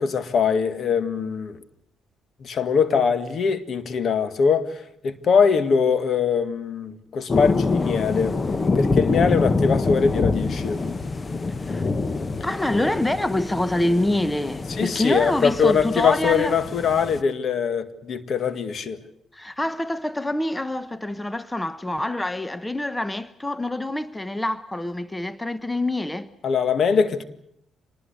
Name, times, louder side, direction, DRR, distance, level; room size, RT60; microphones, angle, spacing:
voice 1, 0.0-1.6 2.4-8.4 8.8-10.8 14.8-19.0 26.4-27.2, left 6 dB, 55° left, 1.9 m, -22 dB
sound 1, 7.3-17.2, left 3 dB, 30° left, 1.1 m, -26 dB
voice 2, 12.4-16.5 19.3-26.3, left 1 dB, 10° left, 0.9 m, -26 dB
25.5 x 20.5 x 8.1 m
cardioid pair, 90°, 0 cm